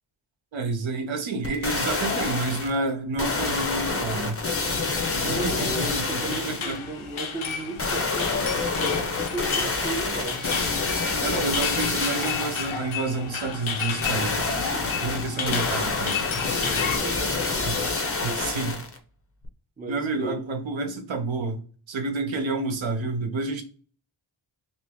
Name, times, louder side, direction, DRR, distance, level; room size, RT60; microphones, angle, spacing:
voice 1, 0.5-4.4 5.2-6.8 11.2-16.4 17.6-17.7 18.2-18.8 19.9-21.6 21.9-23.6, right 3 dB, 70° right, 0.8 m, -29 dB
sound 1, 1.4-2.8 3.2-6.8 7.8-12.8 14.0-19.0 19.4-19.5, left 3 dB, 30° left, 0.6 m, -27 dB
voice 2, 5.2-10.6 15.3-15.7 16.5-17.8 18.2-18.6 19.8-20.4, right 2 dB, 20° right, 0.5 m, -35 dB
sound 2, 5.4-17.0, left 6 dB, 75° left, 0.7 m, -32 dB
2.9 x 2.7 x 3.4 m
wide cardioid pair, 150°, 49 cm